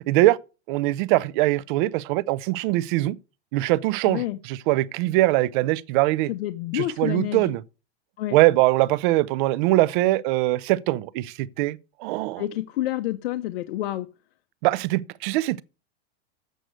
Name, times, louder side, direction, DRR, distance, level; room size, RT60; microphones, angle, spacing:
voice 1, 0.1-0.4 0.7-3.2 3.5-6.3 6.7-7.6 8.3-12.4 14.6-15.6, right 18 dB, 50° right, 0.6 m, -22 dB
voice 2, 4.1-4.4 6.3-7.5 8.2-8.4 12.4-14.1, left 15 dB, 70° left, 0.8 m, -28 dB
7.7 x 6.3 x 6.6 m
supercardioid pair, 140°, 32 cm